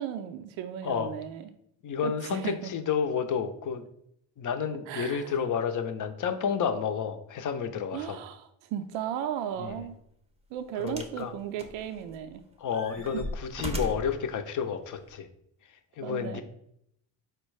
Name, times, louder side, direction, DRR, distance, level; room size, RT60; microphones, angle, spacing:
voice 1, 0.0-1.5 2.0-2.7 4.9-5.3 7.9-10.0 10.5-12.4 16.0-16.4, right 9 dB, 75° right, 9 dB, 0.5 m, -35 dB
voice 2, 0.8-1.1 1.8-3.8 4.4-8.2 9.6-9.7 10.8-11.3 12.6-15.3 16.0-16.4, left 7 dB, 40° left, 8 dB, 0.6 m, -30 dB
sound 1, 9.7-9.9 10.9-11.2 11.6-12.3 12.7-14.2 15.1-15.2, equal, 15° right, 0.7 m, -37 dB
4.4 x 2.2 x 4.7 m, 0.74 s
supercardioid pair, 65°, 47 cm